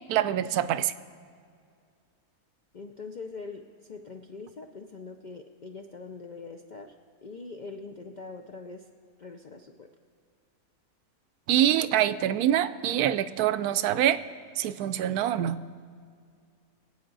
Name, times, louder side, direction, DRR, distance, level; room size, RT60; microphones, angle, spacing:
voice 1, 0.1-0.9 11.5-14.2 14.6-15.6, right 11 dB, 85° right, 12 dB, 1.1 m, -25 dB
voice 2, 2.7-6.9 7.2-8.9 9.2-9.9, left 4 dB, 60° left, 4 dB, 0.4 m, -43 dB
24.0 x 8.5 x 3.9 m, 2.2 s
omnidirectional pair, 1.5 m